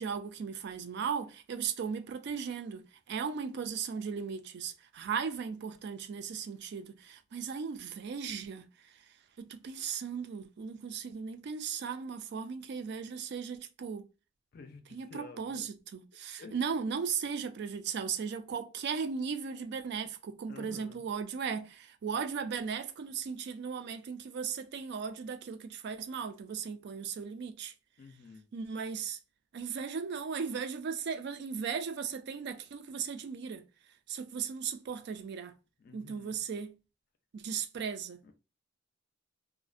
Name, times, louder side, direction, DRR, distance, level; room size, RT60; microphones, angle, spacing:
voice 1, 0.0-8.7 9.4-14.0 14.9-27.7 28.5-29.2 29.5-33.6 34.1-35.5 35.9-36.7 37.3-38.2, right 6 dB, 55° right, 0.3 m, -37 dB
voice 2, 14.5-15.6 16.4-16.6 20.5-21.1 28.0-28.5 35.8-36.4 38.2-38.3, left 4 dB, 50° left, 0.4 m, -50 dB
2.4 x 2.1 x 2.4 m
head